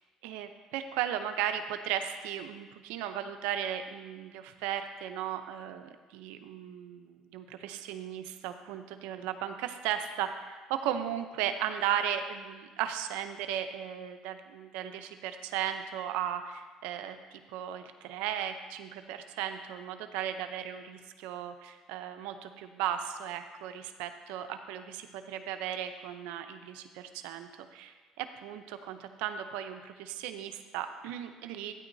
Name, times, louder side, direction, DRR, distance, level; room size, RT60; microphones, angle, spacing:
voice 1, 0.2-31.7, right 10 dB, 90° right, 8 dB, 0.6 m, -36 dB
13.0 x 9.7 x 2.7 m, 1.3 s
supercardioid pair, 90°, 2 cm